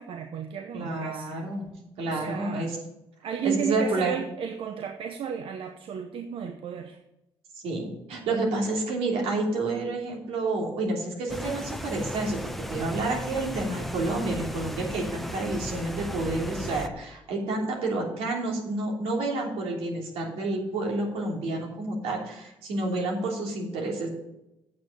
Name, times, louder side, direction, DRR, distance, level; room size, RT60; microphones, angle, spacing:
voice 1, 0.0-1.4 2.1-2.7 3.2-7.0, right 7 dB, 65° right, 6 dB, 0.9 m, -33 dB
voice 2, 0.7-1.7 2.0-2.8 3.4-4.1 7.6-24.1, right 2 dB, 85° right, 0 dB, 3.1 m, -29 dB
sound 1, 11.3-16.9, equal, ahead, 0.7 m, -36 dB
8.6 x 6.4 x 6.6 m, 0.90 s
cardioid pair, 85°, 10 cm